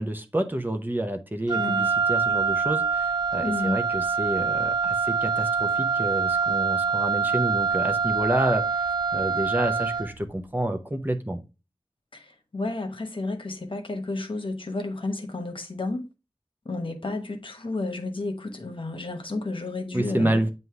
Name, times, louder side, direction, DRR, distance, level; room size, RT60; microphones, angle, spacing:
voice 1, 0.0-11.4 19.9-20.5, right 1 dB, 20° right, 0.8 m, -29 dB
voice 2, 1.5-1.9 3.4-3.8 12.5-16.0 16.7-20.4, left 2 dB, 60° left, 1.1 m, -31 dB
Wind instrument woodwind instrument, 1.5-10.2, right 5 dB, 50° right, 0.3 m, -25 dB
7.7 x 2.7 x 4.7 m
wide cardioid pair, 45°, 10 cm